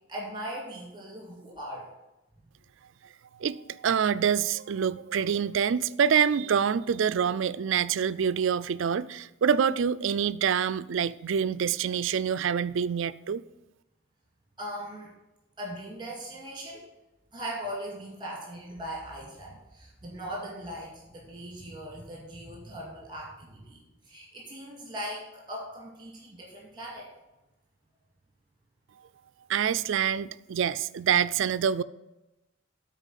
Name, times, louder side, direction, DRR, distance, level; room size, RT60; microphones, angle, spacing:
voice 1, 0.1-1.9 14.6-15.1 15.6-16.8 17.3-27.1, equal, 20° right, 2.2 m, -39 dB
voice 2, 3.4-13.4 29.5-31.8, right 7 dB, 60° right, 0.3 m, -26 dB
9.0 x 4.4 x 7.4 m
head